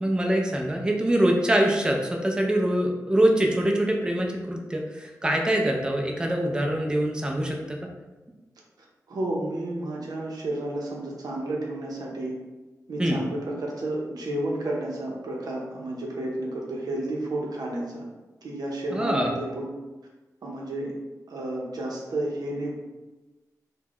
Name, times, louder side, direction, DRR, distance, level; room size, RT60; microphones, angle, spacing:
voice 1, 0.0-7.8 13.0-13.2 18.9-19.3, right 1 dB, 15° right, 1 dB, 0.3 m, -24 dB
voice 2, 9.1-12.4 12.9-18.0 18.4-19.7 20.4-20.9 21.3-22.8, right 1 dB, 90° right, -2 dB, 0.6 m, -31 dB
2.3 x 2.1 x 3.4 m, 1.2 s
wide cardioid pair, 90°, 7 cm